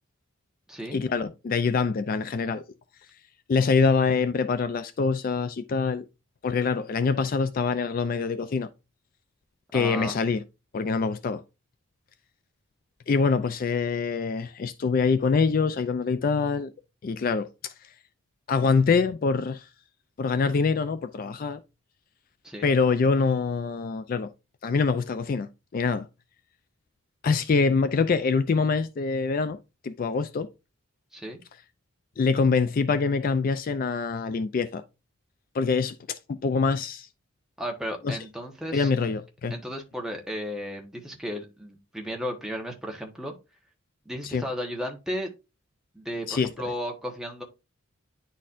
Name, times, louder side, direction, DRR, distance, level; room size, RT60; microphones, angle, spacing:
voice 1, 0.9-2.6 3.5-6.0 6.4-8.7 9.7-10.4 10.7-11.4 13.1-16.7 17.0-17.7 18.5-19.7 20.2-21.6 22.6-24.3 24.6-26.1 27.2-29.6 29.8-30.5 32.2-34.8 35.5-37.1 38.0-38.2 38.7-39.5 44.2-44.4 46.3-46.5, left 4 dB, 40° left, 0.3 m, -25 dB
voice 2, 9.7-10.2 22.4-22.7 31.1-31.4 37.6-38.9 39.5-43.3 44.0-45.3 45.9-47.4, equal, 5° right, 1.1 m, -34 dB
10.0 x 4.2 x 2.5 m
head